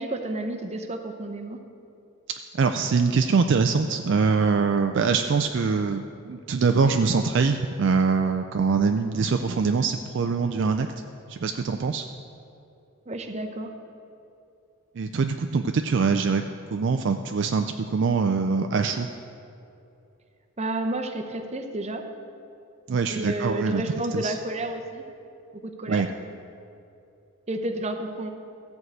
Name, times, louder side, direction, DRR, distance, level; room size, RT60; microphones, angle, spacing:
voice 1, 0.0-1.6 13.1-13.7 20.6-22.0 23.1-25.0 25.6-26.1 27.5-28.3, right 1 dB, 30° right, 6 dB, 0.7 m, -31 dB
voice 2, 2.6-10.9 11.3-12.1 15.0-16.5 16.7-19.1 22.9-23.8 24.1-24.4 25.9-26.1, right 5 dB, 55° right, 6 dB, 0.3 m, -23 dB
13.5 x 4.7 x 7.9 m, 2.7 s
head